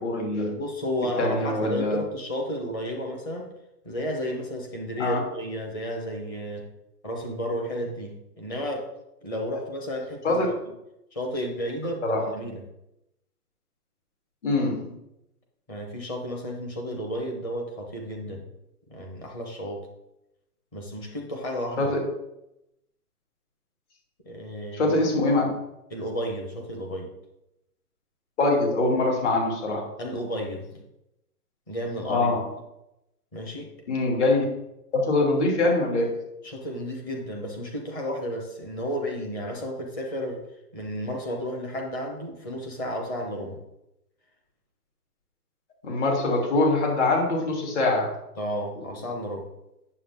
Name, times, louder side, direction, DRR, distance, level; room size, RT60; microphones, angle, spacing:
voice 1, 0.0-0.6 1.0-2.0 5.0-5.2 10.2-10.5 12.0-12.2 14.4-15.0 21.8-22.0 24.7-25.5 28.4-29.9 32.1-32.5 33.9-34.4 34.9-36.3 45.8-48.2, left 2 dB, 45° left, 0 dB, 3.0 m, -23 dB
voice 2, 0.5-3.5 3.8-6.7 7.0-8.9 9.2-10.4 11.1-12.6 15.7-18.5 18.9-19.9 20.7-21.9 24.2-25.0 25.9-27.1 30.0-30.7 31.7-32.4 33.3-33.7 36.4-40.5 40.7-43.6 48.4-49.5, equal, 15° left, 1 dB, 0.9 m, -32 dB
9.1 x 7.3 x 3.6 m, 0.86 s
hypercardioid pair, 160°, 48 cm